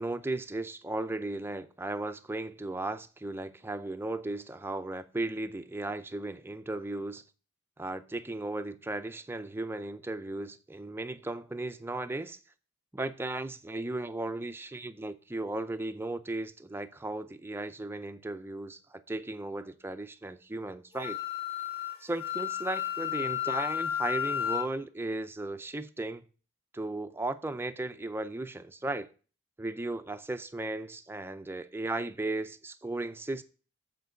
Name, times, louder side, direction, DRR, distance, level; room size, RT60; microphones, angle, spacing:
voice 1, 0.0-7.2 7.8-12.4 12.9-18.8 19.1-21.2 22.0-26.2 26.7-29.1 29.6-33.4, right 2 dB, 10° right, 0.4 m, -36 dB
Wind instrument woodwind instrument, 20.9-24.7, left 11 dB, 25° left, 1.5 m, -32 dB
8.3 x 4.5 x 6.2 m
head